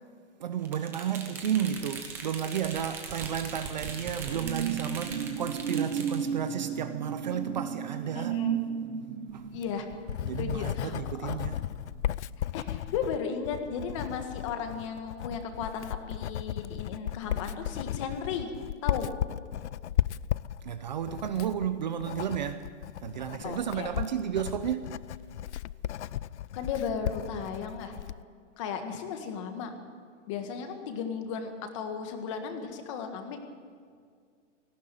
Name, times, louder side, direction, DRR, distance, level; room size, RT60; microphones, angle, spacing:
voice 1, 0.4-8.4 9.3-9.5 10.2-11.6 20.6-22.7 23.0-24.9, right 9 dB, 35° right, 0.8 m, -32 dB
sound 1, 0.6-6.2, right 5 dB, 5° right, 0.7 m, -40 dB
sound 2, 3.4-12.4 12.8-13.0, right 8 dB, 80° right, 2.1 m, -35 dB
voice 2, 8.1-8.7 9.5-9.9 10.4-11.4 12.4-18.5 18.8-19.1 23.4-23.9 26.5-27.9 28.6-29.7 30.3-33.4, left 6 dB, 25° left, 1.7 m, -35 dB
Writing, 9.5-28.2, left 12 dB, 65° left, 0.5 m, -35 dB
18.5 x 16.0 x 9.2 m
hypercardioid pair, 180°, 38 cm